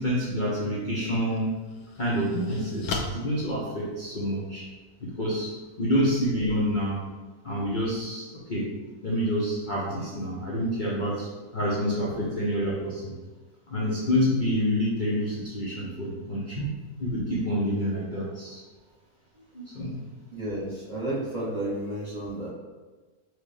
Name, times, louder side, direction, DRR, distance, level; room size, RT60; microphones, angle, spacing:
voice 1, 0.0-1.5 2.0-4.7 5.0-7.0 7.4-8.7 9.0-13.1 13.7-16.6 17.0-18.6 19.5-20.0, equal, 45° left, -7 dB, 0.6 m, -28 dB
sound 1, 0.6-0.8 1.4-4.4, left 4 dB, 85° left, 1.2 m, -37 dB
voice 2, 20.3-22.5, right 1 dB, 30° right, -7 dB, 0.9 m, -31 dB
4.7 x 2.2 x 4.8 m, 1.3 s
omnidirectional pair, 1.7 m